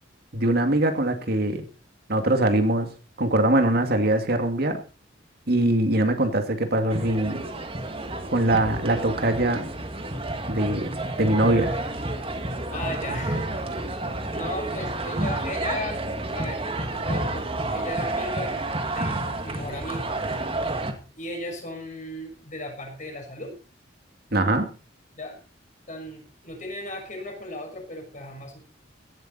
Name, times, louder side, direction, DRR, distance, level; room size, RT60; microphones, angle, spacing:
voice 1, 0.3-1.6 2.1-2.9 3.2-4.8 5.5-7.4 8.3-9.6 10.5-10.9 11.2-11.7 24.3-24.7, right 1 dB, 55° right, 6 dB, 2.3 m, -22 dB
sound 1, 6.9-20.9, right 2 dB, 30° right, 2.2 m, -30 dB
voice 2, 12.7-13.5 14.3-18.5 18.9-20.2 21.2-23.6 25.1-25.4 25.9-28.6, left 1 dB, 40° left, 2 dB, 6.4 m, -36 dB
17.0 x 12.5 x 4.2 m, 0.34 s
head